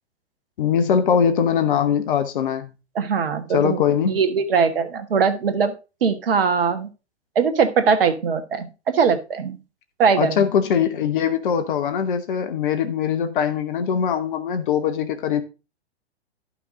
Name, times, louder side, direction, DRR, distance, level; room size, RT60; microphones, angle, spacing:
voice 1, 0.6-2.7 3.5-4.2 10.2-15.4, left 8 dB, 50° left, 1.0 m, -21 dB
voice 2, 2.9-3.8 4.1-5.7 6.0-6.9 7.3-9.6 10.0-10.5, right 6 dB, 60° right, 1.5 m, -21 dB
11.5 x 6.0 x 3.7 m
figure-of-eight pair, 110°, 33 cm